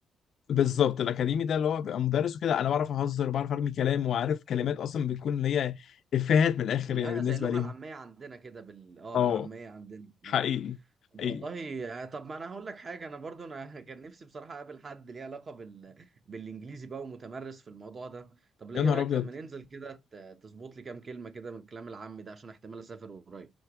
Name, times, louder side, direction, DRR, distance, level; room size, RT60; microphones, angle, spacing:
voice 1, 0.5-5.8 6.1-7.7 9.1-9.5 10.2-10.8 11.2-11.4 18.7-19.3, left 9 dB, 65° left, 0.4 m, -27 dB
voice 2, 6.9-10.4 11.1-23.5, right 4 dB, 40° right, 0.9 m, -42 dB
5.0 x 4.5 x 4.7 m
cardioid pair, 90°, 0 cm